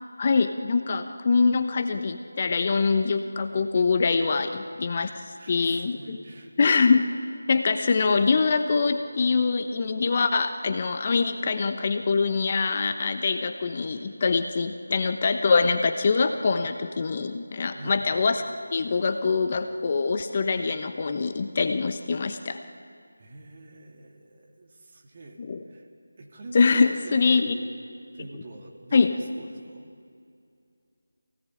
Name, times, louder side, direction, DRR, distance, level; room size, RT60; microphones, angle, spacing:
voice 1, 0.2-5.1 5.5-6.2 6.6-7.1 7.5-18.4 18.7-22.6 25.4-25.6 26.5-27.5 28.9-29.1, left 4 dB, 35° left, 7 dB, 1.1 m, -24 dB
voice 2, 5.4-6.5 17.7-18.0 23.2-25.4 25.7-25.9 26.2-27.7 28.1-29.9, right 2 dB, 35° right, 0 dB, 3.2 m, -44 dB
26.5 x 18.0 x 8.7 m, 2.4 s
figure-of-eight pair, 165°, 0 cm